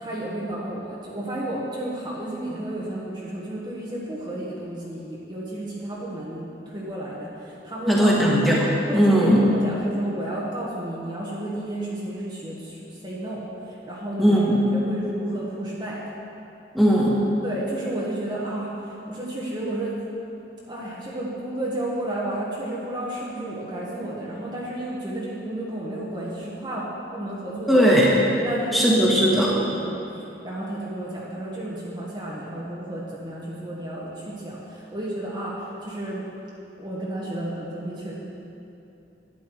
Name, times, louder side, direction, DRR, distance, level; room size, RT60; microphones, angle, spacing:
voice 1, 0.0-8.1 8.9-14.5 14.7-16.0 17.4-20.0 20.7-27.9 28.4-29.4 29.8-30.0 30.4-36.3 36.8-38.1, right 1 dB, 25° right, -6 dB, 1.3 m, -32 dB
voice 2, 7.9-9.4 14.2-14.6 16.7-17.2 27.7-28.1 28.7-29.5, equal, ahead, -6 dB, 1.7 m, -18 dB
11.5 x 9.5 x 4.6 m, 2.9 s
head